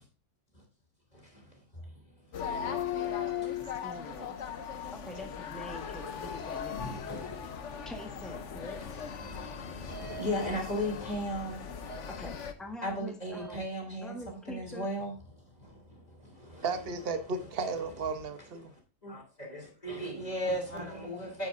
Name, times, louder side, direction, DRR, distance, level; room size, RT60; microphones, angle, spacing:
voice 1, 1.1-1.5 2.4-4.2 4.7-4.9 6.8-7.8 8.9-12.0 12.8-15.1 15.6-16.6 18.6-18.7 19.0-21.5, equal, 30° left, 3.1 m, -38 dB
sound 1, 2.3-12.5, left 8 dB, 70° left, 1.2 m, -38 dB
voice 2, 3.8-4.4 4.9-6.9 7.8-8.8 12.1-13.6 14.0-14.9, left 1 dB, ahead, 1.5 m, -44 dB
voice 3, 16.6-18.7, right 4 dB, 50° right, 1.2 m, -34 dB
9.0 x 9.0 x 2.6 m
omnidirectional pair, 1.3 m